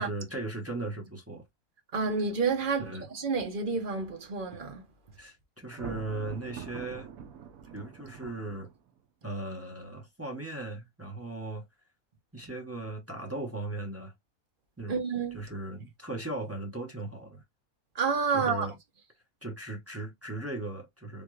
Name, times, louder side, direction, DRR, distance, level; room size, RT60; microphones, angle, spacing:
voice 1, 0.0-1.4 2.8-3.1 5.2-7.1 7.7-8.7 9.2-11.6 12.3-14.1 14.8-15.0 15.3-17.4 18.3-18.8 19.4-21.2, right 2 dB, 15° right, 0.7 m, -37 dB
voice 2, 1.9-4.8 14.9-15.4 18.0-18.7, right 5 dB, 40° right, 0.9 m, -29 dB
Thunder, 5.6-9.0, right 7 dB, 70° right, 1.0 m, -44 dB
3.6 x 2.4 x 3.1 m
omnidirectional pair, 1.6 m